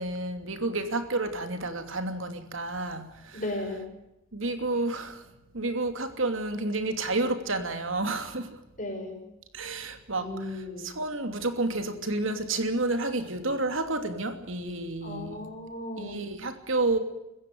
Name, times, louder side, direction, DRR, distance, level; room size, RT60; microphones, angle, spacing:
voice 1, 0.0-3.4 4.3-5.2 5.5-8.6 9.5-10.3 10.8-15.5 16.0-17.0, right 2 dB, 70° right, 7 dB, 2.9 m, -30 dB
voice 2, 3.3-3.9 8.8-9.2 10.1-11.0 15.0-16.2, left 1 dB, 40° left, 4 dB, 5.9 m, -36 dB
26.0 x 15.0 x 9.5 m, 0.91 s
head